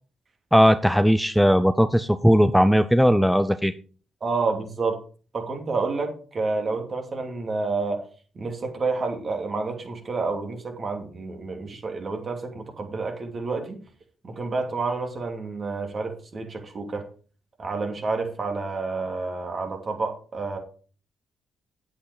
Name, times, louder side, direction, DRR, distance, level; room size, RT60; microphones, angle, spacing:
voice 1, 0.5-3.7, equal, ahead, 12 dB, 0.6 m, -18 dB
voice 2, 4.2-5.0 5.3-8.0 8.3-13.8 14.2-17.1 17.6-20.6, right 3 dB, 45° right, 4 dB, 2.7 m, -29 dB
8.6 x 8.2 x 5.0 m, 0.40 s
supercardioid pair, 55°, 0 cm